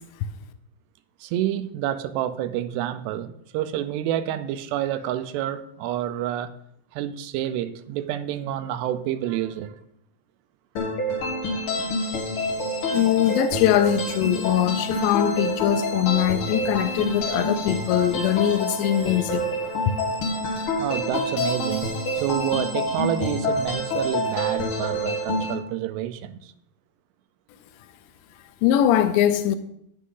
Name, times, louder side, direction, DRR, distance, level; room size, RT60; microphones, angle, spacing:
voice 1, 1.2-6.5 6.9-9.8 20.8-26.5, right 11 dB, 80° right, 2.7 m, -28 dB
sound 1, 10.8-25.5, left 1 dB, 50° left, 1.6 m, -27 dB
voice 2, 12.9-19.4 28.6-29.6, left 11 dB, 85° left, 2.9 m, -22 dB
10.0 x 9.5 x 3.8 m
omnidirectional pair, 4.9 m